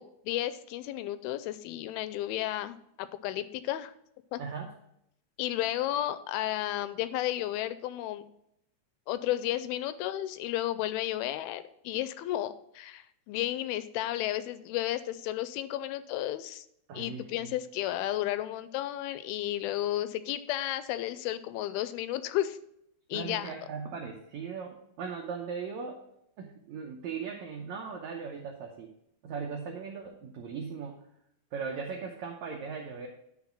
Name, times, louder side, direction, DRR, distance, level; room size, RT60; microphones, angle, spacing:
voice 1, 0.0-3.9 4.3-4.4 5.4-8.2 9.1-16.7 16.9-22.6 23.1-23.5, left 13 dB, 85° left, 13 dB, 2.4 m, -33 dB
voice 2, 4.4-4.7 16.9-17.6 23.1-26.0 26.4-28.9 29.2-31.0 31.5-33.1, right 5 dB, 90° right, 1 dB, 1.6 m, -38 dB
10.5 x 4.1 x 5.8 m, 0.77 s
omnidirectional pair, 4.4 m